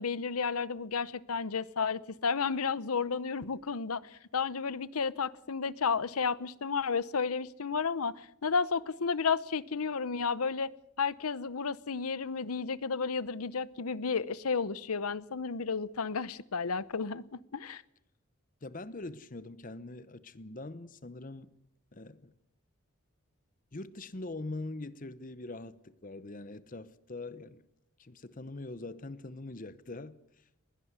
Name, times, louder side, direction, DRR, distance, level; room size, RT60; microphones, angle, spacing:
voice 1, 0.0-4.0 4.3-10.7 11.0-17.2 17.5-17.8, left 5 dB, 90° left, 0.8 m, -32 dB
voice 2, 18.6-21.5 21.9-22.3 23.7-27.6 28.0-30.4, left 2 dB, 40° left, 0.8 m, -43 dB
20.5 x 17.5 x 8.1 m
head